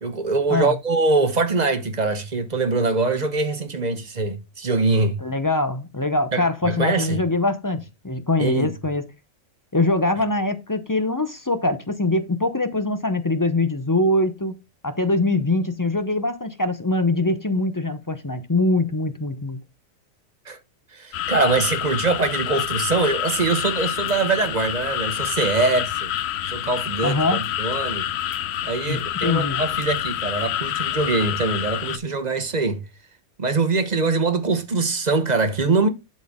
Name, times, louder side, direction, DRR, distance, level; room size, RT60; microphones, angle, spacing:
voice 1, 0.0-5.2 6.3-7.2 8.4-8.7 20.5-20.6 20.9-26.1 26.5-28.1 28.6-32.8 33.4-35.9, right 3 dB, 35° right, 0.9 m, -23 dB
voice 2, 5.2-9.1 9.7-14.5 14.8-19.6 27.0-27.4 28.9-29.6, left 2 dB, 25° left, 0.5 m, -23 dB
sound 1, 21.1-32.0, left 11 dB, 65° left, 0.7 m, -27 dB
11.5 x 4.3 x 3.6 m
omnidirectional pair, 1.4 m